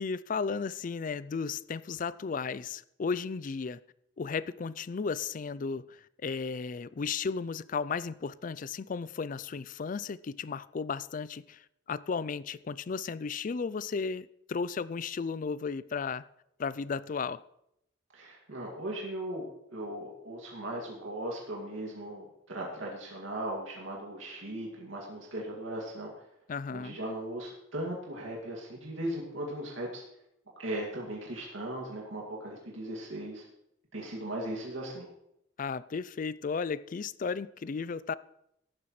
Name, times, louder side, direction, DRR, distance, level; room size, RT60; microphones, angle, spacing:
voice 1, 0.0-3.8 4.2-16.3 16.6-17.4 26.5-27.0 35.6-38.1, left 5 dB, 45° left, 0.4 m, -34 dB
voice 2, 18.1-26.1 26.7-30.0 30.6-33.4 33.9-35.1, right 1 dB, 90° right, 2.4 m, -38 dB
15.0 x 11.0 x 3.2 m
head